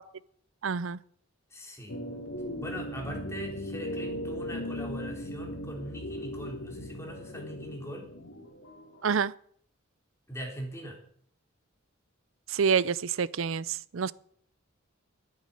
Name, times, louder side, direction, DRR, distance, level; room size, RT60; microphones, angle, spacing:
voice 1, 0.6-1.0 9.0-9.3 12.5-14.1, right 6 dB, 75° right, 0.5 m, -27 dB
voice 2, 1.5-2.0 2.6-8.1 10.3-11.0, equal, 15° left, 3.9 m, -41 dB
sound 1, 1.9-9.0, left 1 dB, 75° left, 2.6 m, -38 dB
10.5 x 9.6 x 9.1 m
head